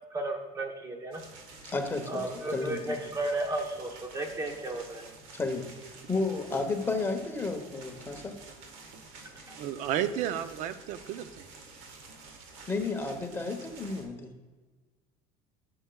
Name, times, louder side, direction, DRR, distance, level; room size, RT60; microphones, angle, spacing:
voice 1, 0.1-1.2 2.1-5.0 9.5-9.6, right 2 dB, 20° right, 3 dB, 0.9 m, -34 dB
sound 1, 1.1-14.0, right 3 dB, 90° right, 1.4 m, -50 dB
voice 2, 1.6-2.9 5.3-8.4 12.7-14.3, left 3 dB, 15° left, 4 dB, 0.9 m, -32 dB
voice 3, 9.6-11.5, right 10 dB, 60° right, 12 dB, 0.5 m, -32 dB
10.5 x 6.8 x 2.3 m, 1.3 s
cardioid pair, 140°, 15 cm